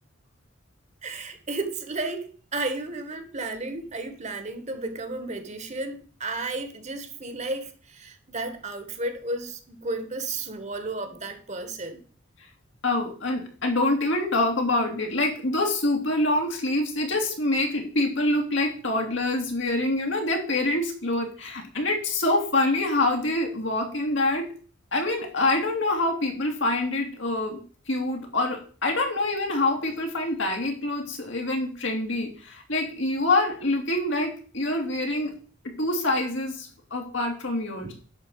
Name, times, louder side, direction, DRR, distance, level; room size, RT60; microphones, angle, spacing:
voice 1, 1.0-12.0 37.8-37.9, right 2 dB, 35° right, 1.6 m, -33 dB
voice 2, 12.8-24.5 24.9-27.6 27.9-35.3 35.8-37.9, left 2 dB, 65° left, 2.8 m, -26 dB
11.0 x 4.5 x 7.9 m
head